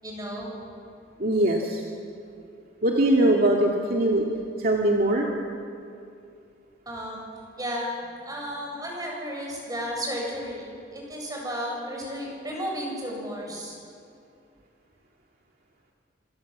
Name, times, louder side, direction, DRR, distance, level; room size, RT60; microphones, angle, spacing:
voice 1, 0.0-0.5 6.9-7.2 7.6-7.9 8.2-13.8, equal, 20° right, -1 dB, 7.9 m, -33 dB
voice 2, 1.2-1.8 2.8-4.3 4.6-5.3, right 1 dB, 55° right, -1 dB, 2.4 m, -21 dB
27.5 x 26.5 x 7.4 m, 2.5 s
head